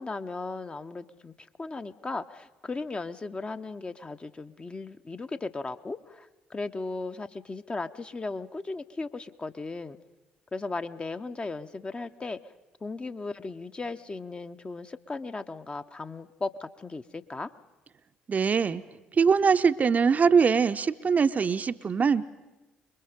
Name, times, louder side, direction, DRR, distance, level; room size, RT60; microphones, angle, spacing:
voice 1, 0.0-1.3 1.6-10.0 10.5-12.4 12.8-17.5, left 3 dB, 25° left, 9 dB, 0.8 m, -36 dB
voice 2, 18.3-18.8 19.1-22.3, right 6 dB, 35° right, 10 dB, 0.7 m, -22 dB
26.5 x 22.0 x 5.2 m, 1.1 s
figure-of-eight pair, 50°, 4 cm